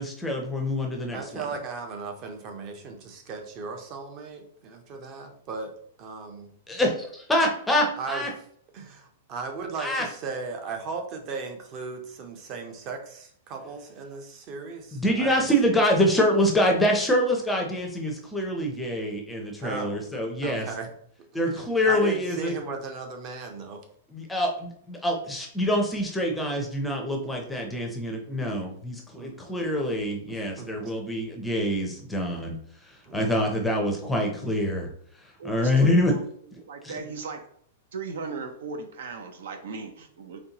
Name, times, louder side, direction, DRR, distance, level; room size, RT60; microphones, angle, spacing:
voice 1, 0.0-1.2 6.7-8.3 9.8-10.0 14.9-20.7 21.3-22.5 24.1-32.6 33.1-34.9 35.4-36.1 36.5-36.9, left 1 dB, 5° left, 1 dB, 0.6 m, -25 dB
voice 2, 1.1-6.5 8.0-8.4 8.7-15.8 19.6-20.0 20.4-20.9 21.3-23.8 29.1-29.4 30.3-30.9 33.0-33.4, right 4 dB, 30° right, 5 dB, 0.7 m, -37 dB
voice 3, 35.4-36.2 36.7-37.5 37.9-40.4, right 4 dB, 70° right, 6 dB, 0.7 m, -37 dB
4.2 x 3.1 x 2.9 m, 0.63 s
supercardioid pair, 160°, 0 cm